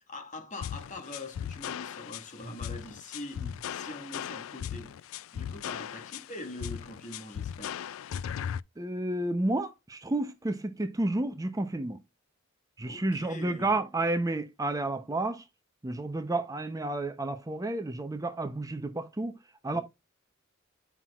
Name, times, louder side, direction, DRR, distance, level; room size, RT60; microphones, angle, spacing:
voice 1, 0.0-4.9 5.3-7.8 12.8-13.7 19.7-19.8, left 2 dB, 40° left, 1.6 m, -43 dB
sound 1, 0.6-8.6, left 9 dB, 75° left, 0.3 m, -37 dB
voice 2, 8.8-12.0 12.8-15.4 15.8-19.4 19.6-19.8, right 2 dB, 15° right, 0.6 m, -31 dB
9.1 x 5.8 x 2.3 m
head